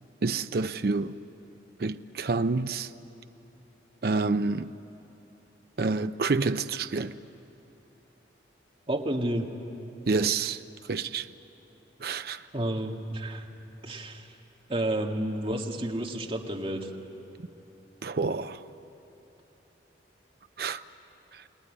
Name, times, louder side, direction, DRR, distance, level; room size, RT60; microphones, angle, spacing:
voice 1, 0.2-1.2 1.8-2.9 4.0-4.7 5.8-7.1 10.1-10.6 10.9-11.3 12.0-12.4 18.0-18.6 20.6-20.8, right 4 dB, 55° right, 0.5 m, -28 dB
voice 2, 8.9-9.5 12.5-13.5 13.8-14.3 14.7-16.9, right 1 dB, 30° right, 1.8 m, -30 dB
29.0 x 19.5 x 9.8 m
head